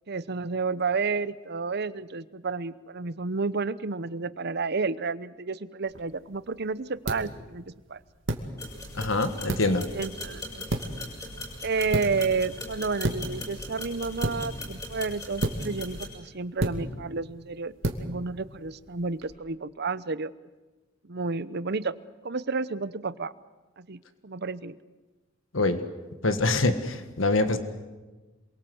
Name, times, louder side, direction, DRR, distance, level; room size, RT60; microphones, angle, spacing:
voice 1, 0.1-7.6 7.9-8.0 9.9-10.7 11.6-20.3 21.0-21.9 22.2-23.3 23.8-24.8, right 4 dB, 55° right, 16 dB, 0.9 m, -31 dB
sound 1, 5.9-19.3, right 1 dB, 75° right, 2.5 m, -35 dB
sound 2, 8.6-16.1, left 1 dB, 20° left, 7.3 m, -40 dB
voice 2, 8.9-9.8 25.5-25.8 26.2-27.6, left 2 dB, 90° left, 9 dB, 1.7 m, -24 dB
27.5 x 23.0 x 8.0 m, 1.2 s
head